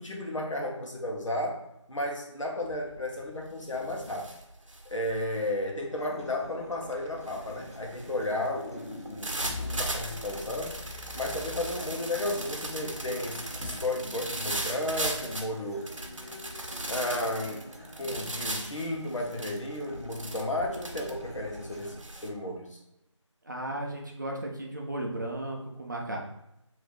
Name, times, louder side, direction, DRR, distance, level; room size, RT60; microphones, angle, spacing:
voice 1, 0.0-1.6 1.9-4.3 4.9-10.8 11.1-15.9 16.9-17.6 18.0-22.8, left 1 dB, 80° left, 0 dB, 0.9 m, -33 dB
sound 1, 2.6-3.0 3.4-22.3, right 1 dB, 80° right, 0.7 m, -38 dB
Acoustic guitar, 6.0-22.0, equal, 30° left, 0.4 m, -48 dB
sound 2, 7.7-7.8 9.5-11.9 13.6-13.7, left 2 dB, 50° left, 0.9 m, -40 dB
voice 2, 23.4-26.2, right 1 dB, 40° right, 0 dB, 0.5 m, -35 dB
2.7 x 2.5 x 3.5 m, 0.84 s
figure-of-eight pair, 165°, 16 cm